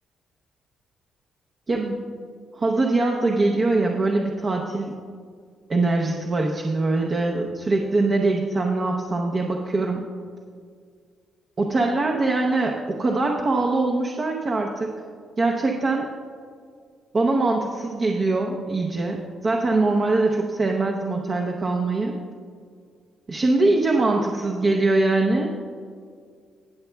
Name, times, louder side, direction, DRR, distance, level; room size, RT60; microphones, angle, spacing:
voice 1, 1.7-2.0 2.5-5.0 5.7-10.0 11.6-14.9 15.4-16.1 17.1-22.1 23.3-25.5, right 2 dB, 40° right, 0 dB, 0.8 m, -22 dB
19.5 x 6.9 x 2.3 m, 2.1 s
cardioid pair, 90°, 0 cm